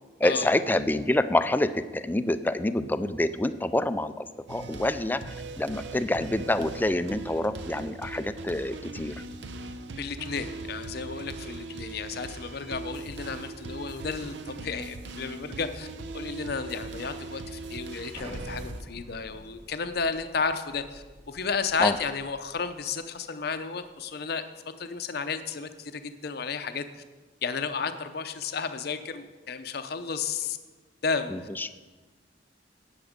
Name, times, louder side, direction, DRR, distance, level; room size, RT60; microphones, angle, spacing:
voice 1, 0.2-5.2 5.6-9.1 21.8-21.9 31.3-31.7, left 1 dB, 10° left, 12 dB, 0.4 m, -27 dB
sound 1, 4.5-18.8, right 3 dB, 70° right, 0.7 m, -40 dB
voice 2, 10.0-15.9 16.1-24.4 24.8-27.0 27.4-30.6 31.0-31.3, left 5 dB, 55° left, 9 dB, 0.6 m, -32 dB
Explosion, 18.1-22.8, equal, 30° right, 1.3 m, -47 dB
13.0 x 9.0 x 5.1 m, 1.3 s
head